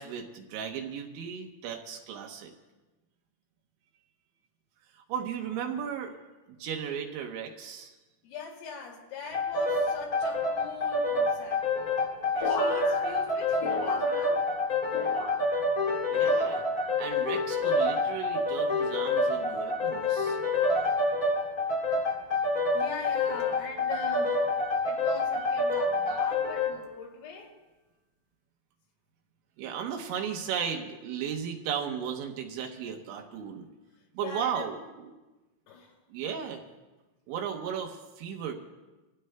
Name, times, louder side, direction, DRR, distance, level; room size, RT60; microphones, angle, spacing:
voice 1, 0.0-2.5 4.9-6.2 6.5-7.9 16.1-16.7 17.0-20.4 29.6-33.7 34.1-35.1 36.1-36.6 37.3-38.5, right 7 dB, 75° right, 3 dB, 3.1 m, -35 dB
voice 2, 8.2-11.7 12.3-14.5 22.7-24.4 24.8-27.6 34.2-34.7 35.7-35.9, left 5 dB, 80° left, -1 dB, 5.1 m, -41 dB
sound 1, 9.3-26.8, left 2 dB, 25° left, 2.5 m, -27 dB
sound 2, 12.4-14.6 14.9-15.8 16.3-17.0 17.6-18.0 18.9-19.3 20.2-20.5, left 3 dB, 55° left, 4.4 m, -38 dB
26.5 x 16.0 x 2.2 m, 1.1 s
omnidirectional pair, 5.8 m